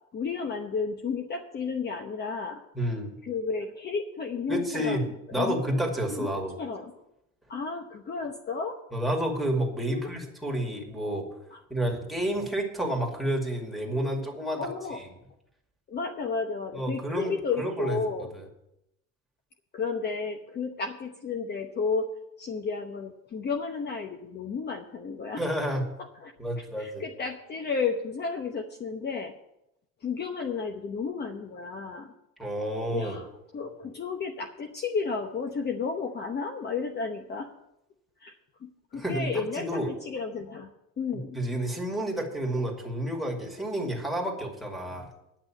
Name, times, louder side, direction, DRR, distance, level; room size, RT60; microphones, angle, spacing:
voice 1, 0.1-2.6 3.2-5.1 5.3-5.6 6.1-6.3 6.6-6.9 7.5-8.8 9.8-10.2 11.5-11.6 14.6-15.0 15.9-18.3 19.7-22.1 22.4-25.4 26.2-26.3 26.6-29.3 30.0-32.1 32.9-37.5 38.2-38.3 38.6-40.7 41.0-41.4, left 5 dB, 35° left, 4 dB, 0.9 m, -32 dB
voice 2, 2.7-3.2 4.5-6.5 8.9-11.2 11.7-14.7 14.9-15.0 16.7-18.0 18.3-18.4 25.4-25.8 26.4-27.0 32.4-33.2 38.9-39.9 41.3-45.1, right 1 dB, ahead, 2 dB, 2.3 m, -30 dB
10.5 x 6.1 x 8.9 m, 0.84 s
cardioid pair, 130°, 31 cm